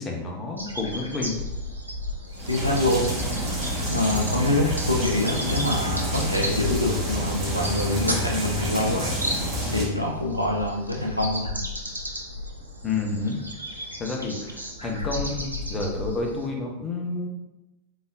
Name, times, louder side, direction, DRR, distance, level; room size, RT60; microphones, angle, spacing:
voice 1, 0.0-1.3 12.8-13.4 14.0-17.3, left 3 dB, 20° left, 1 dB, 0.7 m, -29 dB
sound 1, 0.6-16.5, equal, 85° right, 0.5 m, -35 dB
sound 2, 2.3-9.8, equal, 30° right, 1.4 m, -28 dB
voice 2, 2.5-3.1 3.9-9.1 9.7-11.6, left 1 dB, 90° left, 0 dB, 0.5 m, -25 dB
3.9 x 3.4 x 2.5 m, 0.97 s
figure-of-eight pair, 90°, 0 cm